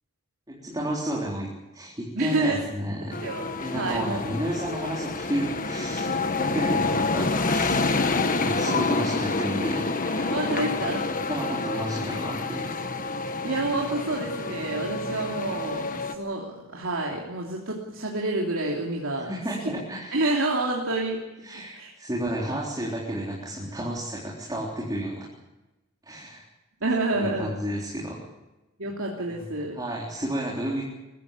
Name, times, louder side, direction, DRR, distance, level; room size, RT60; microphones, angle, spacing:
voice 1, 0.5-1.5 1.7-3.2 3.6-8.0 8.3-9.9 11.3-12.7 19.2-20.2 21.4-25.3 26.0-26.4 27.2-28.2 29.3-29.5 29.7-30.8, right 1 dB, 20° right, -4 dB, 3.8 m, -31 dB
voice 2, 2.1-2.7 3.2-4.3 10.2-11.1 13.4-19.3 19.6-19.7 20.1-21.2 21.7-21.9 26.8-27.5 28.8-29.7, right 2 dB, 80° right, -2 dB, 3.0 m, -28 dB
sound 1, 3.1-16.1, left 3 dB, 40° left, 1.3 m, -28 dB
23.0 x 15.5 x 8.5 m, 1.1 s
head